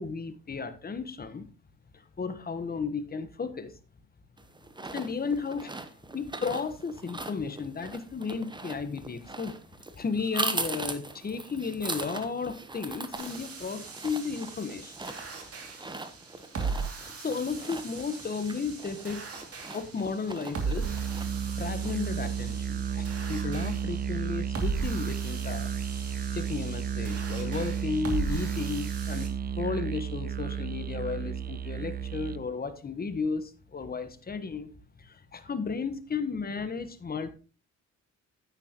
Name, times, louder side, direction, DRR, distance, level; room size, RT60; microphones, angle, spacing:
voice 1, 0.0-1.5 1.9-3.7 4.9-5.7 6.1-9.5 9.9-14.9 17.0-19.3 19.7-20.9 21.5-25.7 26.3-34.7 35.0-37.3, left 5 dB, 30° left, 10 dB, 1.2 m, -34 dB
sound 1, 4.4-22.3, right 2 dB, 15° right, 1.0 m, -40 dB
sound 2, 13.2-29.3, right 5 dB, 50° right, 2.6 m, -38 dB
Musical instrument, 20.8-32.5, right 8 dB, 30° right, 0.5 m, -33 dB
9.7 x 9.1 x 3.0 m, 0.35 s
cardioid pair, 90°, 30 cm